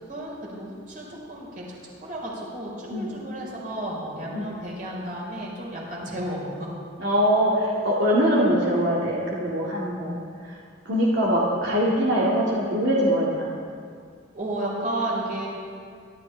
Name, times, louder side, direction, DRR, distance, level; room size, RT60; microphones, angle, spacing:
voice 1, 0.1-1.6 2.0-6.7 14.3-15.5, right 1 dB, 45° right, -4 dB, 4.4 m, -32 dB
voice 2, 7.0-10.2 10.9-13.4, equal, 80° right, -6 dB, 2.1 m, -22 dB
24.5 x 12.5 x 3.4 m, 2.2 s
head